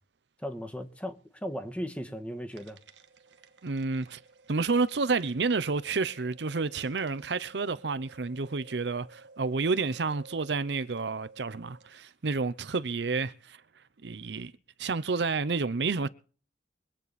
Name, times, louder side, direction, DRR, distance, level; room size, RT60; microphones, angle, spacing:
voice 1, 0.4-2.8, equal, 5° left, 1.4 m, -37 dB
sound 1, 2.5-12.0, right 3 dB, 90° right, 1.3 m, -55 dB
voice 2, 3.6-4.2 4.5-13.6 14.0-14.5 14.8-16.1, right 4 dB, 70° right, 0.7 m, -30 dB
23.5 x 8.8 x 4.1 m
head